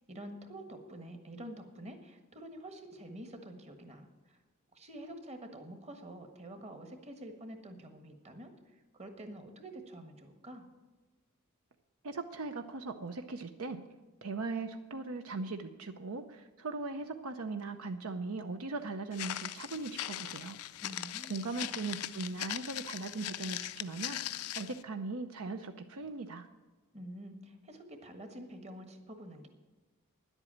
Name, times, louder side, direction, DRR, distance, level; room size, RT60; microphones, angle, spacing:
voice 1, 0.0-4.4 4.7-10.7 20.8-21.5 26.9-29.5, right 1 dB, 30° right, 6 dB, 1.4 m, -48 dB
voice 2, 12.0-13.8 14.2-20.6 21.3-26.5, right 3 dB, 70° right, 7 dB, 0.7 m, -39 dB
Walk footsteps, 19.1-24.8, left 13 dB, 80° left, 0.5 m, -40 dB
10.5 x 8.1 x 8.6 m, 1.2 s
head